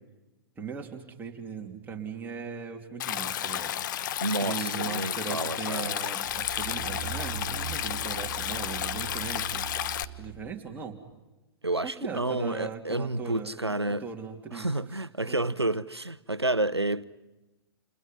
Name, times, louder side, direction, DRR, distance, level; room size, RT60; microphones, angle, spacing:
voice 1, 0.6-3.7 4.4-9.6 10.2-11.0 11.8-14.7 15.3-15.4, right 6 dB, 15° right, 3.1 m, -39 dB
Stream, 3.0-10.0, left 11 dB, 50° left, 0.9 m, -32 dB
voice 2, 4.2-5.9 11.6-14.1 14.5-17.0, right 2 dB, 90° right, 0.9 m, -30 dB
sound 1, 6.3-10.6 11.1-11.2, right 9 dB, 35° right, 2.9 m, -40 dB
30.0 x 29.5 x 5.5 m
figure-of-eight pair, 110°, 13 cm